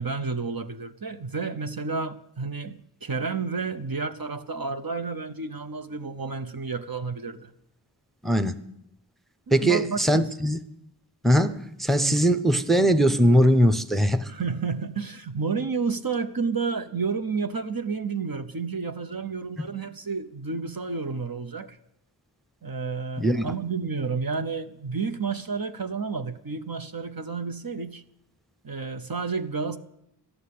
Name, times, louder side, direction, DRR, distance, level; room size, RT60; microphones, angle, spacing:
voice 1, 0.0-7.5 9.5-10.3 12.0-12.2 14.3-21.8 22.6-28.0 28.6-29.8, right 4 dB, 50° right, 0.9 m, -31 dB
voice 2, 8.2-8.6 9.5-10.6 11.2-14.3 19.6-19.7 23.2-23.4, equal, ahead, 0.8 m, -21 dB
13.5 x 11.5 x 8.5 m
wide cardioid pair, 55°, 44 cm